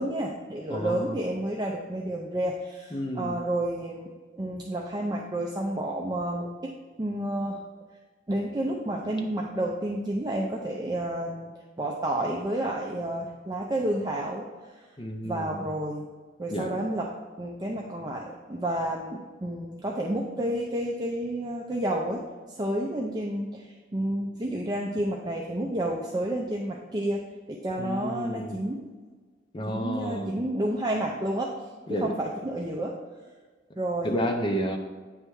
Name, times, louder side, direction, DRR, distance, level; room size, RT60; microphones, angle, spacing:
voice 1, 0.0-7.6 8.3-14.5 15.2-16.1 16.4-17.1 17.4-22.2 22.5-23.7 23.9-27.2 27.5-28.8 29.7-31.5 31.9-33.0 33.8-34.1, right 1 dB, 20° right, -1 dB, 0.5 m, -30 dB
voice 2, 0.7-1.2 2.9-3.4 15.0-15.6 16.5-16.8 27.8-28.6 29.5-30.3 31.9-32.1 34.0-34.8, equal, 25° left, 3 dB, 0.6 m, -31 dB
8.7 x 3.3 x 4.7 m, 1.4 s
head